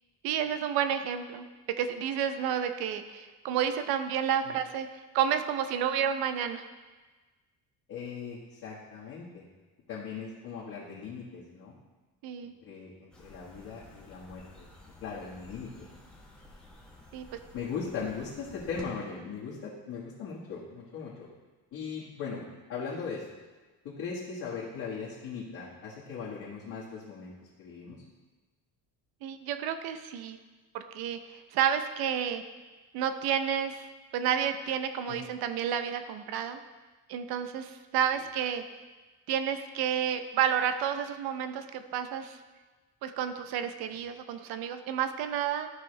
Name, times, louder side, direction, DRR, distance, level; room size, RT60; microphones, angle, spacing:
voice 1, 0.2-1.4 1.8-6.6 12.2-12.5 17.1-17.3 29.2-30.4 30.7-32.4 32.9-33.9 34.1-36.6 37.1-38.6 39.3-42.4 43.0-45.7, right 8 dB, 85° right, 9 dB, 0.8 m, -30 dB
voice 2, 7.9-9.4 9.9-11.7 12.6-14.7 15.0-15.9 17.5-21.3 21.7-22.4 22.7-23.2 23.8-28.0 35.1-35.2, left 5 dB, 55° left, -8 dB, 1.7 m, -39 dB
sound 1, 13.1-18.8, left 2 dB, ahead, 1.0 m, -52 dB
13.0 x 5.6 x 3.3 m, 1.3 s
cardioid pair, 175°, 36 cm